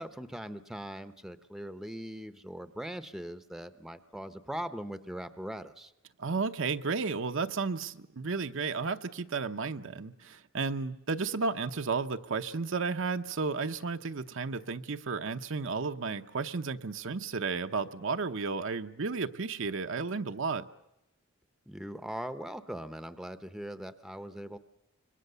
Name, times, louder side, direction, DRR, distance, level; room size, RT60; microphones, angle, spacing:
voice 1, 0.0-5.9 21.7-24.6, equal, ahead, 10 dB, 0.8 m, -40 dB
voice 2, 6.2-20.7, right 4 dB, 60° right, 8 dB, 0.8 m, -33 dB
26.5 x 22.0 x 6.8 m, 0.90 s
head